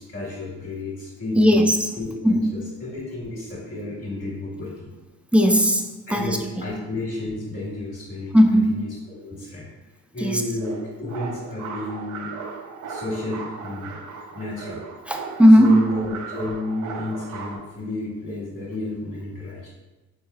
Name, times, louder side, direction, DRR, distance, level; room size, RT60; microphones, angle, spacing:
voice 1, 0.0-1.7 2.0-4.9 6.1-8.3 8.7-9.7 10.1-12.3 12.9-14.0 14.3-14.8 15.6-19.7, left 2 dB, 40° left, -5 dB, 1.3 m, -32 dB
voice 2, 1.4-1.9 2.2-2.5 5.3-5.8 6.1-6.4 8.3-8.7 10.2-10.4 15.1-15.8, equal, 5° right, 4 dB, 0.3 m, -16 dB
sound 1, 10.6-17.6, right 5 dB, 70° right, 0.5 m, -36 dB
4.1 x 3.2 x 2.3 m, 1.1 s
cardioid pair, 90°, 30 cm